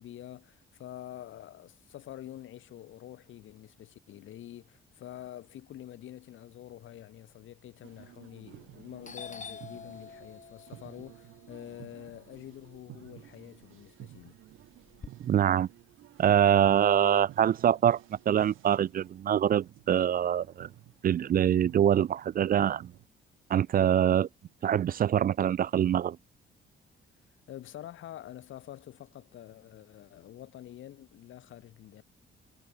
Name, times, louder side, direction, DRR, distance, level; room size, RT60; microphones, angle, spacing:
voice 1, 0.0-14.3 27.3-32.0, left 12 dB, 75° left, 6.6 m, -47 dB
sound 1, 7.8-23.1, right 16 dB, 85° right, 1.4 m, -53 dB
Doorbell, 8.5-8.8 9.0-13.2 13.6-15.1, left 6 dB, 40° left, 3.2 m, -47 dB
voice 2, 15.2-15.7 16.2-18.0 18.3-20.7 21.0-22.9 23.5-24.3 24.6-26.2, right 10 dB, 45° right, 0.5 m, -24 dB
cardioid pair, 90°, 20 cm